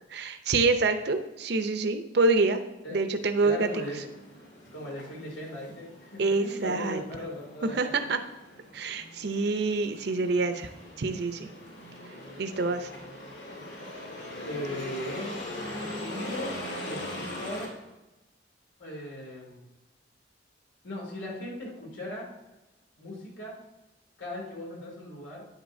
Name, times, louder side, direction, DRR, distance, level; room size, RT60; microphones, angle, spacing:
voice 1, 0.1-2.6 2.9-3.7 6.2-7.0 7.6-8.2 8.7-10.7 11.0-11.5 12.1-12.9, right 3 dB, 60° right, 8 dB, 0.6 m, -26 dB
voice 2, 3.4-4.1 4.7-8.1 14.4-17.7 18.8-19.6 20.8-22.3 23.0-23.6 24.2-25.4, left 1 dB, 90° left, -2 dB, 2.7 m, -38 dB
sound 1, 3.5-17.7, left 1 dB, 70° left, 2.6 m, -41 dB
9.6 x 8.0 x 2.6 m, 1.1 s
head